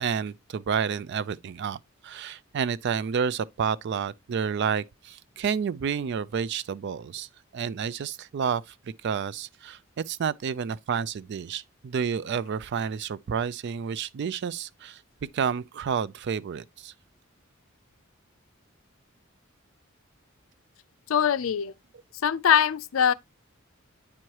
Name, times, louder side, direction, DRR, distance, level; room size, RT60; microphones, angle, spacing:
voice 1, 0.0-8.7 9.0-15.0 15.3-16.9, right 7 dB, 55° right, 0.3 m, -30 dB
voice 2, 21.1-21.7 22.2-23.1, left 8 dB, 80° left, 0.4 m, -22 dB
8.6 x 4.6 x 2.9 m
head